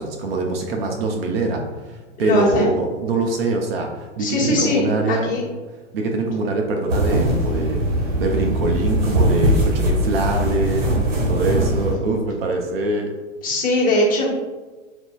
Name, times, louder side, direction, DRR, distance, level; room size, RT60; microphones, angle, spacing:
voice 1, 0.0-5.4 5.9-10.8 11.3-13.1, right 2 dB, 55° right, 2 dB, 0.5 m, -24 dB
voice 2, 2.2-2.8 4.2-5.4 13.4-14.3, left 1 dB, 20° left, -6 dB, 1.1 m, -20 dB
sound 1, 6.9-11.9, right 1 dB, 75° right, 1.2 m, -20 dB
4.1 x 2.5 x 2.2 m, 1.3 s
hypercardioid pair, 120°, 37 cm